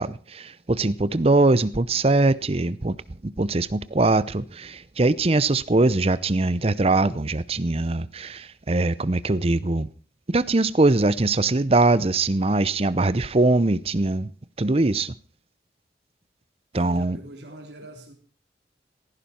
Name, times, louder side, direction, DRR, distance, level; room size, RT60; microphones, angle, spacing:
voice 1, 0.0-3.0 3.2-9.9 10.3-14.3 14.6-15.1 16.7-17.2, right 2 dB, 35° right, 0.7 m, -22 dB
voice 2, 16.7-18.1, right 1 dB, 75° right, 3.4 m, -43 dB
17.0 x 15.0 x 4.4 m
head